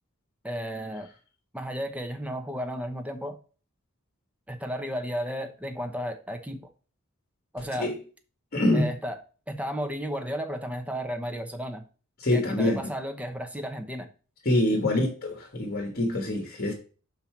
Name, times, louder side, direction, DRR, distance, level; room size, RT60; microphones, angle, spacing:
voice 1, 0.4-1.1 1.5-3.4 4.5-6.6 7.5-7.9 8.7-9.2 9.5-11.8 12.3-14.1, equal, 5° right, 1.0 m, -33 dB
voice 2, 8.5-8.9 12.2-12.8 14.4-16.7, left 1 dB, 45° left, 1.5 m, -25 dB
5.7 x 5.6 x 4.5 m
head